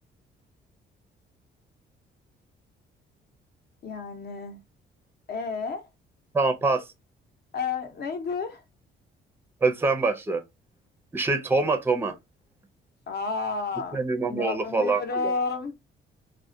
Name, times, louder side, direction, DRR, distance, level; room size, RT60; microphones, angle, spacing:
voice 1, 3.8-4.6 5.3-5.9 7.5-8.6 13.1-15.7, left 4 dB, 55° left, 0.8 m, -31 dB
voice 2, 6.3-6.8 9.6-10.4 11.1-12.1 13.9-15.3, right 3 dB, 10° right, 0.5 m, -24 dB
2.3 x 2.1 x 2.6 m
cardioid pair, 90°, 20 cm